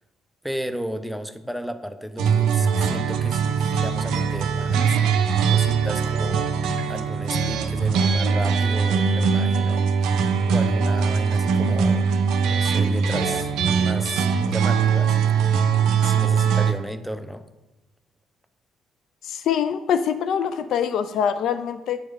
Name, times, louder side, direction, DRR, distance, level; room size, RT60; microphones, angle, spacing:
voice 1, 0.4-5.0 5.5-6.6 6.9-12.1 12.4-15.6 16.0-17.4, equal, ahead, 9 dB, 0.6 m, -33 dB
Guitar and bass, 2.2-16.7, right 6 dB, 60° right, 0.5 m, -21 dB
voice 2, 19.2-22.0, left 8 dB, 55° left, 11 dB, 0.3 m, -24 dB
6.3 x 4.7 x 5.2 m, 0.99 s
figure-of-eight pair, 45°, 0 cm